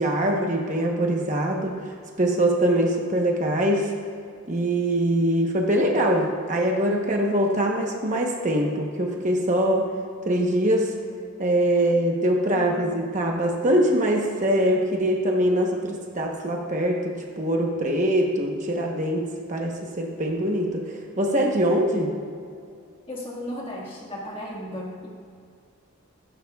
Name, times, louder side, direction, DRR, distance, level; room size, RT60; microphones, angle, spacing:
voice 1, 0.0-3.9 4.5-9.9 10.3-10.9 11.4-22.1, right 1 dB, 35° right, 0 dB, 1.0 m, -23 dB
voice 2, 12.5-12.9 23.1-25.1, left 1 dB, 25° left, -3 dB, 1.7 m, -35 dB
15.5 x 11.0 x 2.4 m, 2.3 s
head